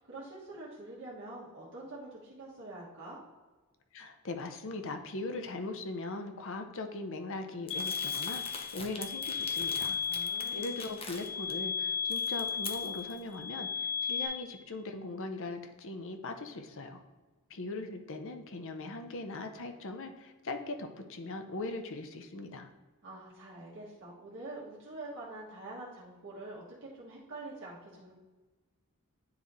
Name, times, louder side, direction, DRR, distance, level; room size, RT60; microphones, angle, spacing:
voice 1, 0.0-3.2 10.0-10.7 23.0-28.1, right 2 dB, 60° right, -6 dB, 1.5 m, -46 dB
voice 2, 3.9-10.0 10.5-17.0 17.5-22.7, left 2 dB, 65° left, 6 dB, 0.7 m, -40 dB
sound 1, 7.7-14.3, left 6 dB, 90° left, 1.8 m, -35 dB
Crumpling crinkling, 7.7-11.5 11.9-13.2, left 4 dB, 25° left, 0.7 m, -44 dB
9.6 x 3.2 x 4.0 m, 1.2 s
head